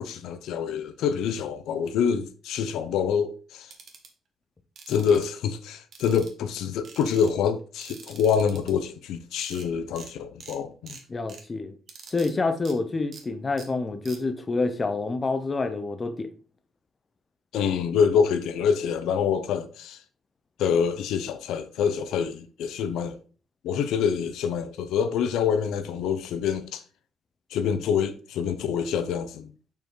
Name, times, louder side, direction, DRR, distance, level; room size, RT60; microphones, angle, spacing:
voice 1, 0.0-3.7 4.9-11.0 17.5-20.0 20.6-23.2 23.6-26.8 27.5-29.5, left 7 dB, 85° left, 0.7 m, -26 dB
sound 1, 3.7-4.1 4.8-5.3 5.9-6.5 6.8-7.3 7.8-8.7 9.1-9.2 9.4-9.7 10.0-10.1 10.4-10.6 10.9-11.4 11.9-12.3 12.6-12.7 13.1-13.2 13.6-13.7 14.0-14.2, right 5 dB, 45° right, 1.4 m, -45 dB
voice 2, 11.1-11.7 12.1-16.3, left 3 dB, 20° left, 0.7 m, -27 dB
6.8 x 5.5 x 3.8 m
cardioid pair, 165°, 0 cm